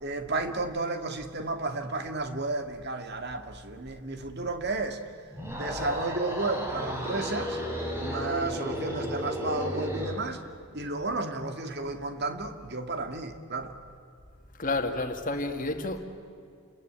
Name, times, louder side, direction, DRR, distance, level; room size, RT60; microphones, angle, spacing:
voice 1, 0.0-5.0 5.6-7.6 8.0-10.4 10.7-13.7, right 2 dB, 45° right, 2.0 m, -32 dB
sound 1, 5.3-10.2, equal, 10° right, 4.1 m, -33 dB
voice 2, 14.6-16.0, left 2 dB, 35° left, 2.1 m, -30 dB
30.0 x 21.5 x 9.2 m
head